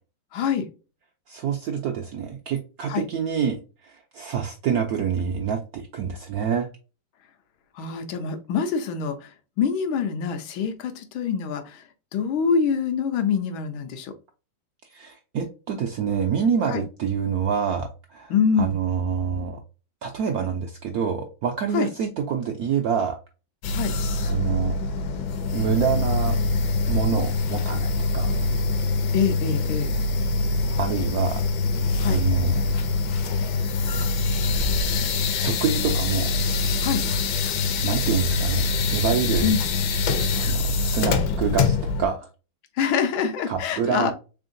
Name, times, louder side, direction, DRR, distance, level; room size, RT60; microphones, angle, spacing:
voice 1, 0.3-0.7 2.9-3.0 7.8-9.3 9.6-11.8 12.1-14.1 16.7-16.8 18.3-18.7 21.7-21.9 23.7-23.9 29.1-29.9 32.0-32.2 36.8-37.0 39.4-39.6 42.8-44.1, left 6 dB, 90° left, 8 dB, 1.5 m, -25 dB
voice 2, 1.3-6.7 14.9-19.6 20.0-23.2 24.2-24.7 25.5-26.4 26.9-27.9 28.1-28.3 30.8-31.4 32.0-32.6 35.4-36.3 37.8-38.6 38.9-39.5 40.4-42.3 43.5-44.1, right 7 dB, 80° right, 3 dB, 0.8 m, -26 dB
sound 1, 23.6-42.1, left 3 dB, 70° left, 1.2 m, -24 dB
3.7 x 3.5 x 2.5 m, 0.32 s
omnidirectional pair, 2.1 m